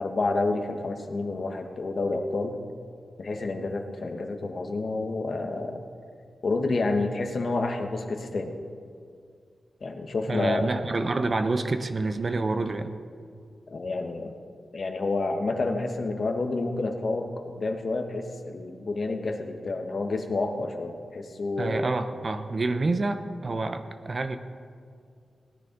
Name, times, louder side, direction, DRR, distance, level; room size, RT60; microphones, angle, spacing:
voice 1, 0.0-2.6 3.2-5.8 6.4-8.5 9.8-10.7 13.7-14.3 14.7-21.9, left 3 dB, 55° left, 4 dB, 1.3 m, -29 dB
voice 2, 10.3-12.9 21.6-24.4, right 3 dB, 45° right, 8 dB, 0.8 m, -28 dB
18.0 x 9.8 x 5.3 m, 2.2 s
wide cardioid pair, 85°, 0 cm